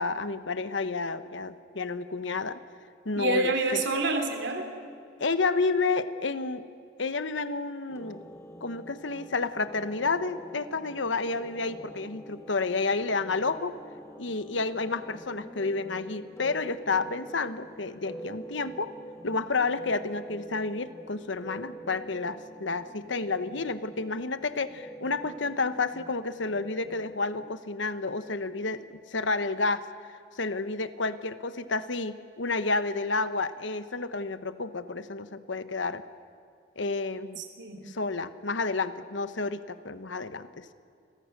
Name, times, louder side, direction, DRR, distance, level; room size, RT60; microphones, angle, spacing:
voice 1, 0.0-2.6 3.0-3.8 5.2-6.6 7.0-8.2 8.6-13.8 14.2-18.9 19.2-29.9 30.3-36.0 36.8-37.4 37.8-40.7, left 3 dB, 75° left, 12 dB, 1.1 m, -30 dB
voice 2, 3.2-4.7 37.4-37.8, right 2 dB, 70° right, 5 dB, 3.1 m, -27 dB
sound 1, 7.9-27.6, right 1 dB, 15° left, 1.1 m, -46 dB
30.0 x 23.0 x 6.7 m, 2.4 s
head